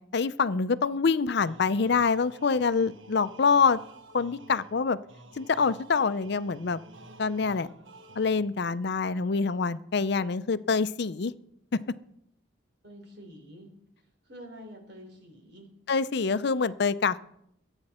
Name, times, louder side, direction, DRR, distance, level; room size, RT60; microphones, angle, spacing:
voice 1, 0.1-3.8 4.1-5.0 5.4-6.8 7.2-7.7 8.2-11.3 11.7-11.8 15.9-17.2, left 5 dB, 60° left, 14 dB, 0.5 m, -25 dB
sound 1, 1.4-8.8, right 2 dB, 80° right, 1.2 m, -51 dB
voice 2, 12.8-13.7 14.2-15.7, equal, 60° right, 3 dB, 3.7 m, -47 dB
23.0 x 8.9 x 4.3 m, 0.76 s
head